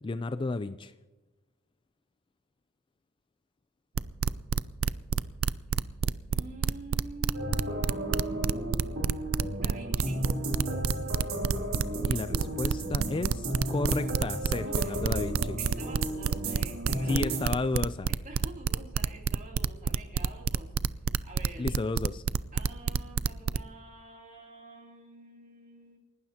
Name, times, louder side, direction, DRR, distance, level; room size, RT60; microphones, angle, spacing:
voice 1, 0.0-0.9 12.1-15.6 17.1-18.1 21.6-22.2, left 3 dB, 25° left, 13 dB, 0.4 m, -32 dB
sound 1, 4.0-23.6, right 6 dB, 65° right, 0.4 m, -28 dB
voice 2, 6.3-9.0 9.5-10.3 12.3-12.4 14.6-15.0 15.6-17.4 18.2-20.7 21.2-21.7 22.5-26.0, right 2 dB, 40° right, 0 dB, 3.1 m, -45 dB
sound 2, 7.3-17.5, right 1 dB, 80° right, 3.2 m, -34 dB
29.0 x 12.0 x 2.9 m, 1.1 s
head